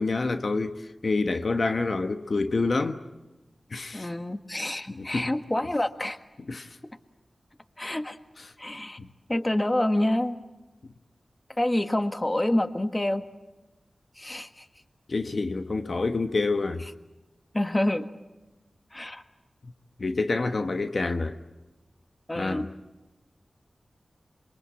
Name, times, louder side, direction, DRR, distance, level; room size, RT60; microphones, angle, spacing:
voice 1, 0.0-3.0 3.7-4.1 5.0-5.3 6.5-6.7 9.0-9.1 15.1-16.8 19.6-19.7 20.0-21.4 22.3-22.7, left 3 dB, 65° left, 1.3 m, -27 dB
voice 2, 3.9-6.2 7.8-8.2 8.6-9.0 9.3-10.4 11.6-13.2 14.2-14.7 17.5-18.1 18.9-19.2 22.3-22.7, left 1 dB, 25° left, 1.6 m, -27 dB
27.0 x 23.0 x 8.7 m
cardioid pair, 45°, 0 cm